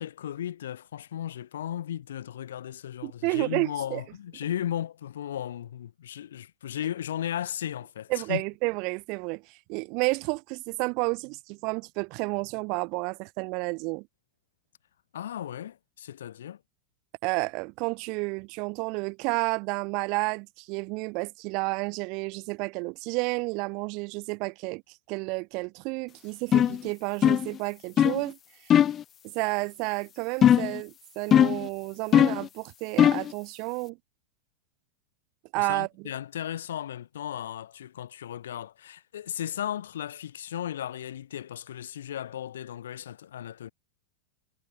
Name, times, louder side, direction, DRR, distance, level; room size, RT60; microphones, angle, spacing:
voice 1, 0.0-8.4 15.1-16.6 35.5-43.7, left 10 dB, 60° left, 4.1 m, -35 dB
voice 2, 3.0-4.0 8.1-14.1 17.2-28.7 29.2-34.0 35.5-36.1, right 30 dB, 45° right, 2.1 m, -31 dB
sound 1, 26.5-26.8 27.2-27.5 28.0-28.2 28.7-29.0 30.4-30.8 31.3-31.7 32.1-32.5 33.0-33.3, left 10 dB, 25° left, 0.4 m, -19 dB
figure-of-eight pair, 90°, 0 cm